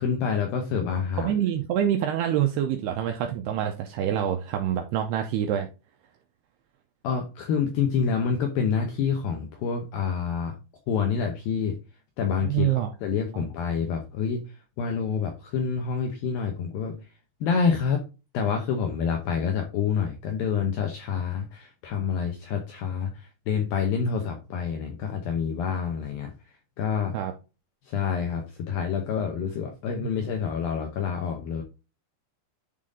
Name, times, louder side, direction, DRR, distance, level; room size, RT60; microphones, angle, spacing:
voice 1, 0.0-1.3 7.0-10.5 10.9-11.8 12.2-14.4 14.8-17.0 17.4-18.0 18.3-26.3 26.8-27.1 27.9-31.6, left 6 dB, 80° left, 2.1 m, -27 dB
voice 2, 1.2-5.7 12.4-12.9 13.3-13.5 27.1-27.3 30.0-30.1, right 10 dB, 90° right, 2.3 m, -26 dB
10.5 x 3.7 x 3.7 m
omnidirectional pair, 5.4 m